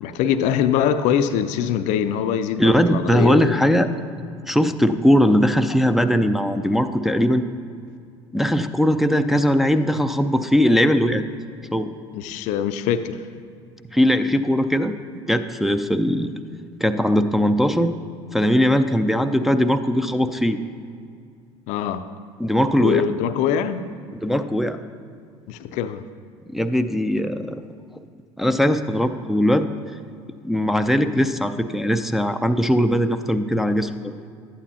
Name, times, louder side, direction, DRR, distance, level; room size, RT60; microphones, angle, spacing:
voice 1, 0.0-3.6 12.1-13.2 21.7-22.1 22.8-23.8 25.5-26.0, left 8 dB, 55° left, 0.5 m, -23 dB
voice 2, 2.6-3.9 4.5-7.5 8.3-11.3 11.7-11.9 13.9-14.9 15.3-16.3 16.8-17.9 18.3-20.6 22.4-23.1 24.2-24.8 26.5-27.6 28.4-29.7 30.4-34.1, equal, ahead, 0.4 m, -20 dB
11.0 x 9.0 x 2.8 m
hypercardioid pair, 65°, 15 cm